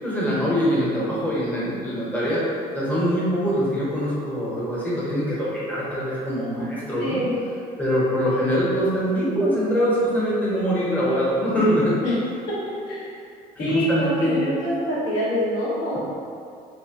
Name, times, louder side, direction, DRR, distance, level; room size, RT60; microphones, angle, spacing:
voice 1, 0.0-2.4 2.7-7.2 7.8-12.0 13.6-14.5 15.9-16.0, equal, 10° left, -8 dB, 0.9 m, -23 dB
voice 2, 7.0-7.4 12.0-12.1 12.5-13.1 13.6-16.0, left 1 dB, 85° left, -9 dB, 1.1 m, -26 dB
2.9 x 2.5 x 2.8 m, 2.4 s
cardioid pair, 110°, 17 cm